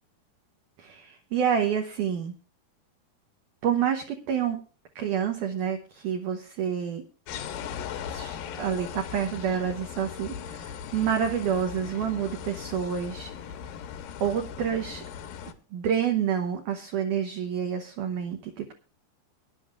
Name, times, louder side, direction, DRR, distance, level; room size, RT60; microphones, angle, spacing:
voice 1, 0.8-2.3 3.6-4.6 5.0-7.0 8.1-13.3 14.2-15.0 15.7-18.7, right 8 dB, 70° right, 4 dB, 2.0 m, -28 dB
sound 1, 7.3-15.5, left 8 dB, 75° left, 2.3 m, -38 dB
23.0 x 10.5 x 2.4 m, 0.36 s
omnidirectional pair, 4.8 m